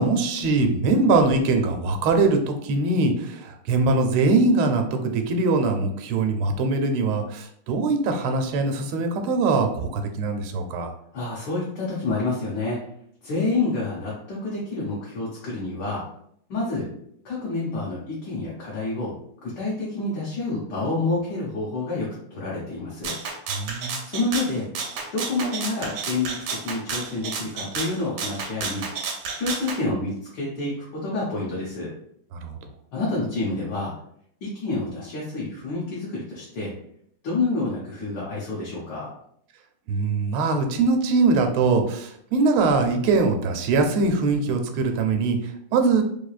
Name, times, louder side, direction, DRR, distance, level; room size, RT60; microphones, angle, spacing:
voice 1, 0.0-10.9 23.5-24.0 32.3-32.7 39.9-46.0, right 3 dB, 90° right, 5 dB, 1.5 m, -22 dB
voice 2, 11.1-12.8 13.2-16.0 16.5-16.9 17.2-19.1 19.4-23.2 24.0-24.6 25.1-28.9 29.4-31.9 32.9-33.9 34.4-36.7 37.2-39.1, left 3 dB, 65° left, -6 dB, 1.4 m, -28 dB
Rattle (instrument), 23.0-29.8, right 5 dB, 70° right, 1.0 m, -31 dB
3.6 x 3.3 x 2.3 m, 0.69 s
omnidirectional pair, 2.3 m